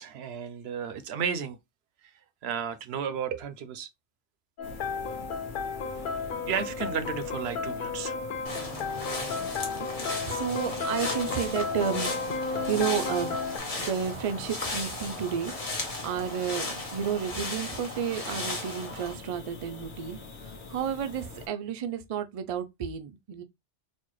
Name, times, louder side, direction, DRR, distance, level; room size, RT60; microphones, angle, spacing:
voice 1, 0.0-1.6 2.0-2.1 2.4-3.9 6.5-8.2, right 7 dB, 75° right, 0.8 m, -33 dB
sound 1, 4.6-21.5, left 3 dB, 85° left, 1.1 m, -45 dB
sound 2, 4.6-13.6, left 4 dB, 55° left, 0.7 m, -33 dB
sound 3, 8.5-19.1, left 2 dB, 35° left, 1.0 m, -36 dB
voice 2, 10.2-12.1 12.4-13.4 13.8-15.5 16.0-23.4, right 8 dB, 55° right, 0.4 m, -32 dB
4.2 x 2.3 x 3.1 m
omnidirectional pair, 1.1 m